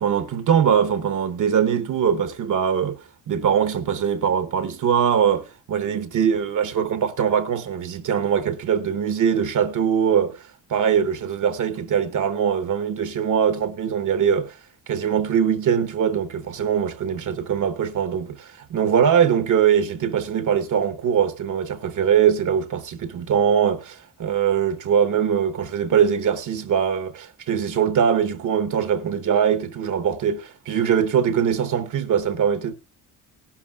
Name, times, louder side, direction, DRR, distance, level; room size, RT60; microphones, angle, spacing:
voice 1, 0.0-14.6 14.9-32.7, right 8 dB, 50° right, 0.9 m, -22 dB
18.5 x 11.5 x 2.3 m
cardioid pair, 145°, 41 cm